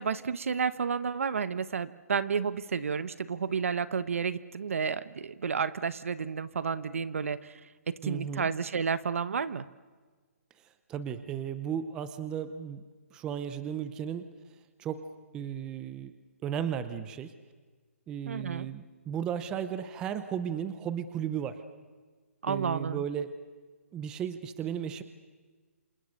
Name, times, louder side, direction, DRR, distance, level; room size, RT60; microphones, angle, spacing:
voice 1, 0.0-7.6 7.9-9.7 18.3-18.7 22.4-23.0, right 6 dB, 65° right, 15 dB, 1.1 m, -31 dB
voice 2, 8.0-8.5 10.9-12.8 13.1-14.3 14.8-15.0 15.3-16.1 16.4-17.3 18.1-21.6 22.5-23.3 23.9-25.0, right 8 dB, 10° right, 11 dB, 0.7 m, -35 dB
28.0 x 27.5 x 6.5 m, 1.4 s
hypercardioid pair, 170°, 8 cm